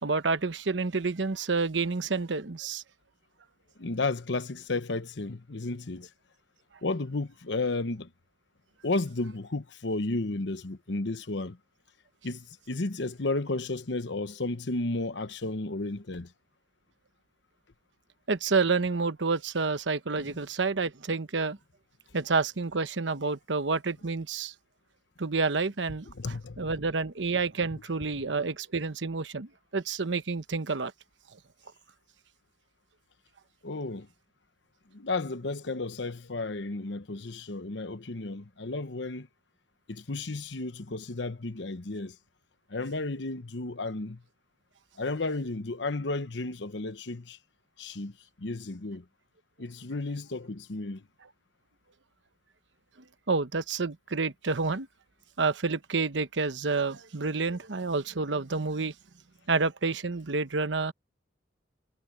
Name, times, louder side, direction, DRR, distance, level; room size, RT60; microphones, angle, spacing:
voice 1, 0.0-2.8 18.3-21.6 22.1-24.5 25.2-26.1 26.6-30.9 53.3-54.9 55.4-58.9 59.5-60.9, right 4 dB, 80° right, 1.0 m, -29 dB
voice 2, 3.8-6.1 6.8-8.1 8.8-11.6 12.2-16.3 20.1-20.3 26.1-26.8 28.1-28.2 33.6-34.1 34.9-39.3 39.9-42.2 42.7-44.2 45.0-47.4 47.8-49.0 49.6-51.1, left 2 dB, 70° left, 1.0 m, -33 dB
head